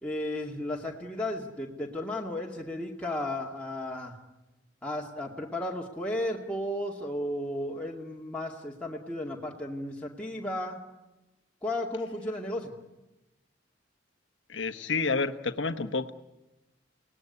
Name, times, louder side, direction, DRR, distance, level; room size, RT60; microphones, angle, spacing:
voice 1, 0.0-4.2 4.8-10.8 11.6-12.7, left 1 dB, 5° left, -3 dB, 2.3 m, -34 dB
voice 2, 14.5-16.1, left 4 dB, 80° left, 10 dB, 1.2 m, -29 dB
30.0 x 19.0 x 9.7 m, 1.1 s
head